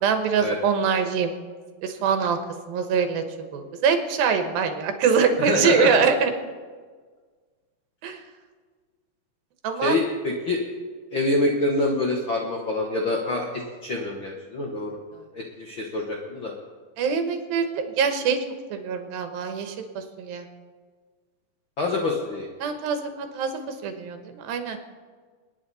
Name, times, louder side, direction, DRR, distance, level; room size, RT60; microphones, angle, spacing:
voice 1, 0.0-1.3 1.8-2.4 2.7-3.2 3.5-6.3 8.0-8.2 9.6-10.0 17.0-18.4 18.7-20.5 22.6-24.8, right 6 dB, 90° right, 6 dB, 3.0 m, -24 dB
voice 2, 5.4-6.0 9.8-10.6 11.1-15.0 15.3-16.5 21.8-22.5, left 2 dB, 60° left, -1 dB, 1.3 m, -26 dB
27.5 x 9.6 x 4.2 m, 1.5 s
omnidirectional pair, 4.1 m